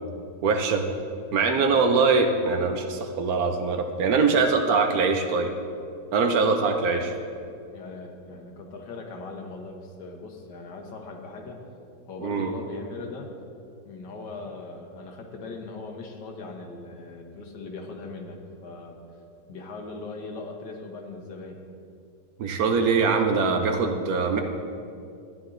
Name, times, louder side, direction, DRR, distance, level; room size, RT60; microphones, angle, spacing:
voice 1, 0.4-0.9 1.3-5.5 6.1-7.1 12.2-12.5 22.4-24.4, right 4 dB, 65° right, 5 dB, 1.0 m, -23 dB
voice 2, 6.2-6.9 7.4-11.7 12.1-13.3 13.8-19.0 19.5-21.6, left 3 dB, 80° left, 2 dB, 1.7 m, -40 dB
14.0 x 9.9 x 2.6 m, 2.5 s
omnidirectional pair, 1.8 m